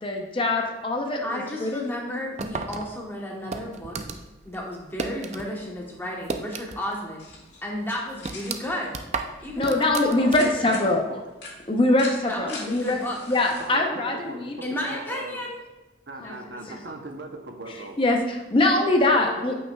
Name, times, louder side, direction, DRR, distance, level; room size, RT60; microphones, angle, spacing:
voice 1, 0.0-1.8 9.6-11.0 11.7-13.0 13.3-14.5 16.2-16.3 18.0-19.5, left 2 dB, 30° left, 2 dB, 0.6 m, -23 dB
voice 2, 1.2-4.0 4.4-7.3 7.6-8.9 9.4-10.8 12.3-13.2 14.6-15.6 16.2-16.6, left 1 dB, 10° left, -2 dB, 1.0 m, -33 dB
sound 1, 2.4-5.5 5.8-7.0 7.3-7.4 7.9-10.7, right 4 dB, 35° right, 0.4 m, -34 dB
sound 2, 7.2-13.7, left 3 dB, 70° left, 2.1 m, -44 dB
voice 3, 10.2-11.2 13.6-15.4 16.1-18.0 18.8-19.5, right 2 dB, 65° right, 4 dB, 0.7 m, -39 dB
8.8 x 5.4 x 2.3 m, 1.1 s
head